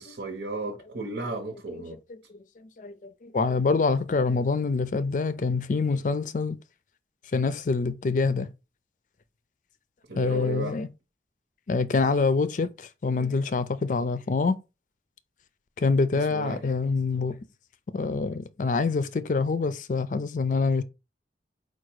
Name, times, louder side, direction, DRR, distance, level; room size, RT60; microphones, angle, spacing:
voice 1, 0.0-2.0 10.1-10.8 16.1-16.6, right 2 dB, 90° right, 1.1 m, -34 dB
voice 2, 2.1-6.6 7.3-8.5 10.1-10.9 11.7-14.6 15.8-17.4 17.9-20.8, left 4 dB, 45° left, 0.4 m, -26 dB
4.7 x 2.3 x 4.6 m
head